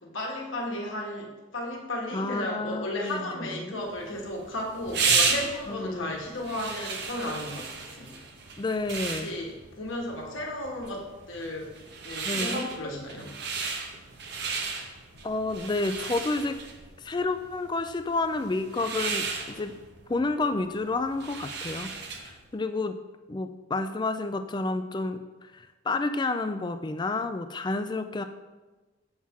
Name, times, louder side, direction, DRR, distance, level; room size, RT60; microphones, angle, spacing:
voice 1, 0.0-7.7 8.0-8.2 9.2-11.7 12.0-13.3, left 1 dB, 65° left, -1 dB, 1.5 m, -34 dB
voice 2, 2.1-3.8 5.7-6.2 8.0-8.1 8.6-9.3 12.2-12.7 15.2-16.6 17.0-19.8 20.1-23.0 23.3-28.2, left 3 dB, 20° left, 9 dB, 0.3 m, -30 dB
sound 1, 3.9-22.4, right 5 dB, 50° right, 0.7 m, -33 dB
7.3 x 6.4 x 3.6 m, 1.2 s
head